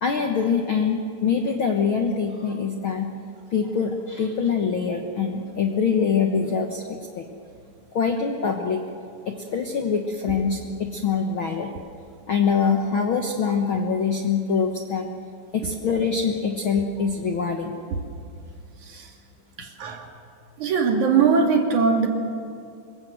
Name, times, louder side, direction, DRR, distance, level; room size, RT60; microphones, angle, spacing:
voice 1, 0.0-3.1 3.5-7.3 7.9-8.8 9.3-11.7 12.3-15.1 15.5-17.7, left 5 dB, 60° left, 2 dB, 1.4 m, -24 dB
voice 2, 19.6-20.1 20.6-22.1, right 5 dB, 60° right, 3 dB, 3.4 m, -21 dB
26.5 x 22.0 x 7.9 m, 2.4 s
omnidirectional pair, 4.1 m